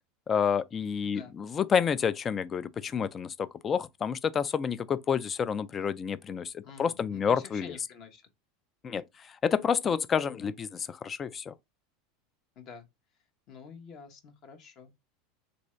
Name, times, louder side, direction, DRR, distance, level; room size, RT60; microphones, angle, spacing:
voice 1, 0.3-7.8 8.8-11.5, left 7 dB, 25° left, 0.3 m, -29 dB
voice 2, 1.0-1.3 6.6-8.2 10.2-10.5 12.6-12.9 13.5-14.9, left 6 dB, 45° left, 0.8 m, -48 dB
3.6 x 2.7 x 3.1 m
supercardioid pair, 145°, 0 cm